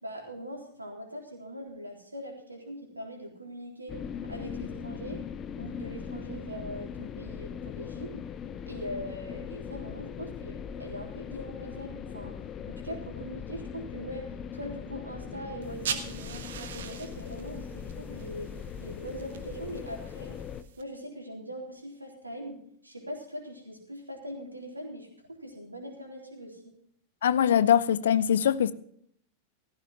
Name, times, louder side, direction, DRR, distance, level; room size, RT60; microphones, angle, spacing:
voice 1, 0.0-4.0 4.3-5.2 5.6-8.3 8.7-18.5 18.8-20.4 20.8-26.8, equal, 85° right, 3.6 m, -41 dB
sound 1, 3.9-20.6, left 7 dB, 30° left, 0.9 m, -40 dB
sound 2, 15.6-20.8, right 8 dB, 60° right, 1.4 m, -41 dB
voice 2, 27.2-28.7, left 9 dB, 60° left, 0.7 m, -22 dB
17.0 x 14.5 x 3.0 m
figure-of-eight pair, 90°, 0 cm